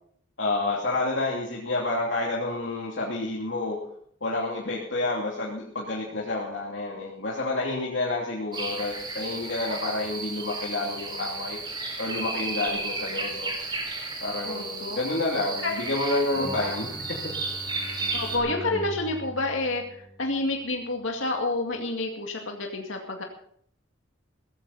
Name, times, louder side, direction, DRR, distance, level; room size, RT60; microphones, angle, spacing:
voice 1, 0.4-3.8 4.2-11.6 12.0-13.5 14.2-16.9, left 2 dB, 70° left, -4 dB, 2.9 m, -29 dB
sound 1, 8.5-18.4, right 3 dB, 20° right, 4.0 m, -33 dB
voice 2, 14.4-15.0 15.6-15.8 16.4-16.8 18.1-23.2, left 2 dB, 85° left, 1 dB, 2.2 m, -29 dB
Bowed string instrument, 16.3-20.7, right 1 dB, 5° right, 1.3 m, -41 dB
17.0 x 14.5 x 4.2 m, 0.64 s
head